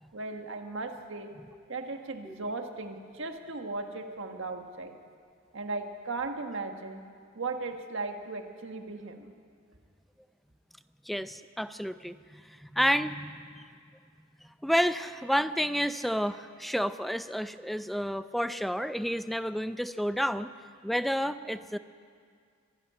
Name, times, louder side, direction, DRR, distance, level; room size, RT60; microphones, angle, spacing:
voice 1, 0.1-1.3 1.7-4.9 5.5-7.0 7.3-9.3, right 3 dB, 70° right, 5 dB, 1.5 m, -37 dB
voice 2, 11.1-13.6 14.6-20.5 20.8-21.8, equal, ahead, 12 dB, 0.4 m, -30 dB
24.5 x 11.5 x 9.6 m, 2.2 s
head